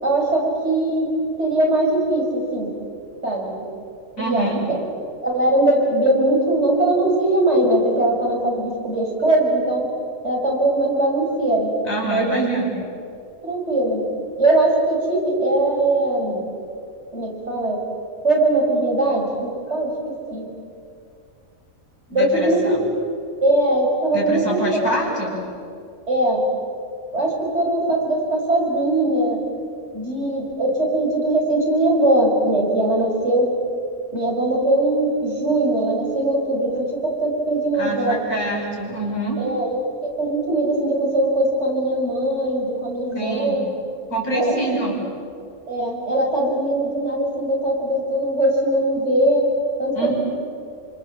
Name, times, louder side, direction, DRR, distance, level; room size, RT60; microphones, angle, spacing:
voice 1, 0.0-1.1 1.4-2.7 3.2-3.7 4.2-4.8 5.2-9.9 10.2-11.7 12.0-12.4 13.4-14.0 14.4-16.4 17.1-17.8 18.2-19.9 20.3-20.5 22.1-22.7 23.4-24.6 26.1-26.4 27.1-29.4 29.9-33.6 34.1-38.2 39.4-43.6 44.3-44.5 45.7-49.5 49.8-50.1, right 1 dB, 55° right, -2 dB, 6.1 m, -20 dB
voice 2, 4.2-4.6 11.9-12.7 22.1-22.8 24.1-25.4 37.7-39.4 43.1-43.6 44.1-45.0 49.9-50.1, right 1 dB, 75° left, -2 dB, 6.4 m, -25 dB
27.5 x 25.5 x 7.5 m, 2.4 s
omnidirectional pair, 1.4 m